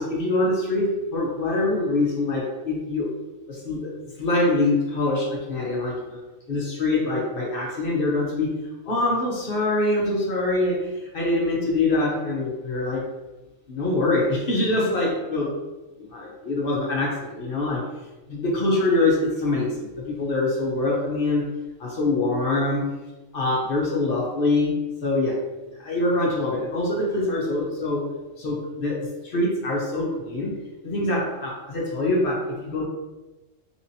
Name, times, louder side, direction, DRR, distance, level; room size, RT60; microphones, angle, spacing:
voice 1, 0.0-3.1 3.5-3.9 4.2-6.2 6.5-8.6 8.9-13.0 13.7-15.5 16.0-17.9 18.3-21.5 21.8-22.9 23.3-25.4 25.8-28.1 28.4-30.6 30.8-32.9, left 2 dB, 50° left, -2 dB, 0.9 m, -24 dB
3.6 x 3.0 x 2.7 m, 1.1 s
omnidirectional pair, 1.3 m